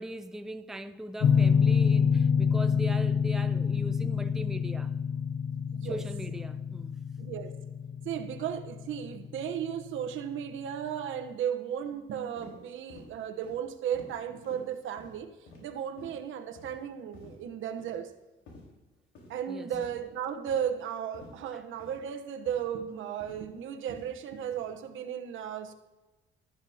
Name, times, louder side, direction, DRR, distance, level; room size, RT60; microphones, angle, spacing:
voice 1, 0.0-4.9 5.8-7.0 19.5-19.8 21.5-21.6, right 1 dB, ahead, 0.6 m, -40 dB
sound 1, 1.2-9.9, left 6 dB, 65° left, 0.6 m, -27 dB
voice 2, 5.5-6.0 7.2-7.5 8.0-15.3 15.6-18.1 19.3-25.7, right 9 dB, 80° right, 1.1 m, -35 dB
sound 2, 12.4-12.5 12.9-13.1 13.4-13.6 13.9-14.1 14.4-14.6 15.0-15.1 15.5-15.6 16.0-16.2 16.5-16.7 17.1-17.3 17.8-18.0 18.5-18.6 19.1-19.3 19.8-20.0 20.5-20.6 21.1-21.3 21.8-22.0 22.4-22.6 23.2-23.4 23.9-24.1 24.5-24.7, left 2 dB, 85° left, 4.5 m, -51 dB
14.5 x 13.0 x 2.9 m
cardioid pair, 90°, 20 cm